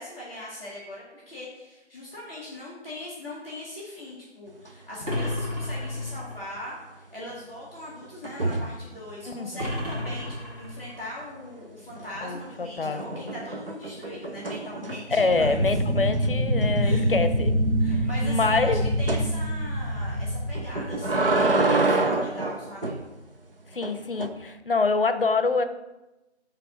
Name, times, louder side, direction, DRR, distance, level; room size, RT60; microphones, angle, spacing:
voice 1, 0.0-15.6 16.8-17.1 17.8-22.9, left 1 dB, 10° right, -12 dB, 1.0 m, -40 dB
sound 1, 4.7-5.3 5.5-5.9 8.2-8.8 11.9-12.4 12.8-15.2 15.7-15.8 16.1-16.2 16.6-16.7 19.1-19.3 20.5-23.0 23.8-24.3, right 2 dB, 55° right, 0.8 m, -27 dB
sound 2, 5.0-6.5 9.6-11.1, left 1 dB, 35° right, 2.0 m, -32 dB
voice 2, 12.2-13.3 15.1-17.5 17.9-18.8 23.7-25.6, left 4 dB, 50° left, 9 dB, 0.7 m, -26 dB
sound 3, 15.1-21.5, equal, 70° right, 1.4 m, -26 dB
8.3 x 3.4 x 6.0 m, 1.0 s
figure-of-eight pair, 175°, 34 cm